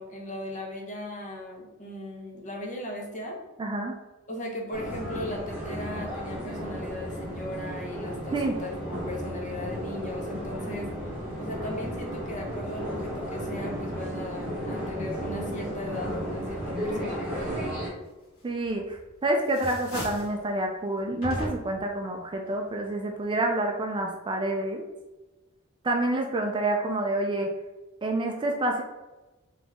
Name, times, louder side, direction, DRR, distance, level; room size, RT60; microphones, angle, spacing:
voice 1, 0.0-3.4 4.3-10.9 11.4-17.5, left 1 dB, 35° left, 0 dB, 0.8 m, -37 dB
voice 2, 3.6-4.0 8.3-8.6 18.4-24.8 25.8-27.5 28.0-28.8, right 1 dB, 25° right, 2 dB, 0.4 m, -28 dB
sound 1, 4.7-17.9, equal, 5° right, 1.2 m, -34 dB
sound 2, 18.6-19.1 19.4-20.4 21.2-21.9, equal, 75° left, 1.3 m, -36 dB
3.9 x 2.9 x 3.5 m, 1.1 s
head